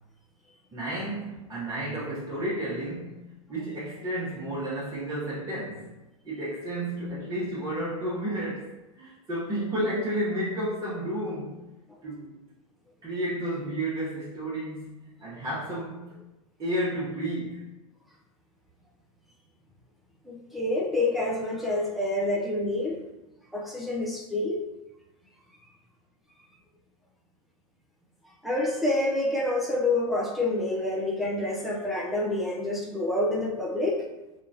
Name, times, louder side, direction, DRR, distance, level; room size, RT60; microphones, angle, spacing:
voice 1, 0.7-5.9 6.2-11.6 12.0-12.4 13.0-16.2 16.6-17.7, right 1 dB, 20° right, -8 dB, 0.9 m, -32 dB
voice 2, 20.3-23.0 23.5-24.6 28.4-34.0, left 2 dB, ahead, -3 dB, 0.4 m, -27 dB
2.9 x 2.3 x 2.6 m, 1.0 s
hypercardioid pair, 95°, 18 cm